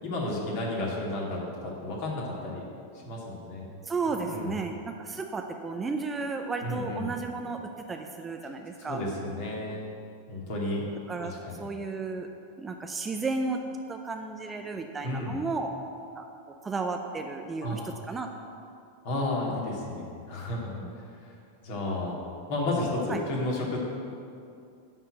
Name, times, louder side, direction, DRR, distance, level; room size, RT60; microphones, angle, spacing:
voice 1, 0.0-2.6 3.0-3.7 4.2-4.5 6.6-7.1 8.9-9.9 10.3-10.9 11.4-11.6 15.0-15.4 17.6-17.9 19.0-20.8 21.6-22.2 22.5-23.8, left 2 dB, 50° left, -3 dB, 2.5 m, -32 dB
voice 2, 3.8-7.6 7.9-9.0 11.1-11.3 11.6-12.3 12.6-15.7 16.1-16.2 16.6-18.3 20.8-20.9 23.1-23.2, right 3 dB, 15° right, 4 dB, 0.6 m, -33 dB
11.0 x 4.5 x 7.6 m, 2.5 s
figure-of-eight pair, 90°, 0 cm